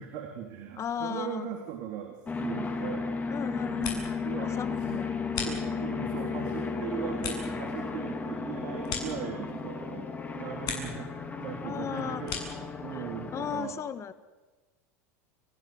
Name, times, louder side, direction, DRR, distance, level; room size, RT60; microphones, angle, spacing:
voice 1, 0.0-3.1 3.6-5.1 5.4-11.1 11.4-13.8, right 8 dB, 60° right, 3 dB, 3.6 m, -39 dB
voice 2, 0.8-1.5 3.3-5.1 11.6-12.3 12.9-13.1 13.3-14.1, left 8 dB, 35° left, 13 dB, 1.7 m, -36 dB
sound 1, 2.3-13.6, left 4 dB, 20° left, 3.8 m, -34 dB
sound 2, 3.5-4.3 4.6-6.1 6.5-9.8 10.1-11.1 11.4-12.7, left 6 dB, 50° left, 8.0 m, -40 dB
30.0 x 16.0 x 8.2 m, 1.2 s
hypercardioid pair, 95°, 8 cm